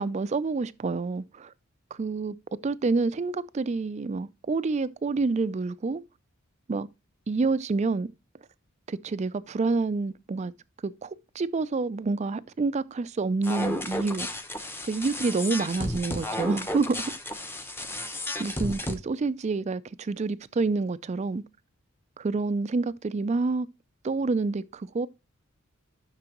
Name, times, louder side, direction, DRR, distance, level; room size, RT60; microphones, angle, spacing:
voice 1, 0.0-1.5 2.0-2.4 2.6-6.0 6.7-6.9 7.3-8.1 8.9-10.5 10.8-14.3 14.9-17.1 18.4-21.4 22.2-23.7 24.0-25.1, right 3 dB, 30° right, 0.3 m, -28 dB
sound 1, 13.4-18.9, left 1 dB, 10° left, 0.7 m, -33 dB
11.0 x 6.0 x 2.9 m
head